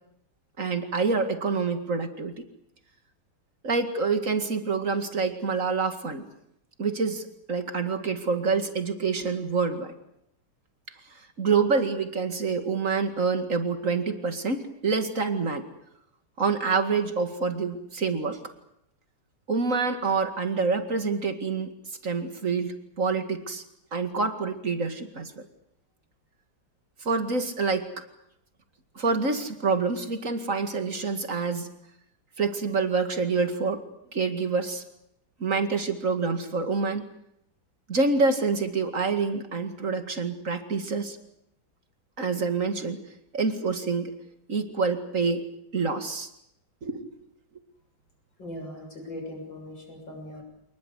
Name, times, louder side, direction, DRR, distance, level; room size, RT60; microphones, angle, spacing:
voice 1, 0.6-2.4 3.6-6.2 6.8-9.9 11.4-15.7 16.4-18.4 19.5-21.8 22.0-23.6 23.9-25.4 27.0-27.9 29.0-31.7 32.4-33.8 34.1-34.8 35.4-37.0 37.9-41.2 42.2-43.0 43.3-44.1 44.5-45.4 45.7-46.3 46.8-47.1, right 4 dB, 40° right, 8 dB, 2.5 m, -27 dB
voice 2, 48.4-50.4, left 1 dB, 70° left, 3 dB, 7.3 m, -39 dB
27.0 x 20.5 x 8.2 m, 0.77 s
omnidirectional pair, 2.1 m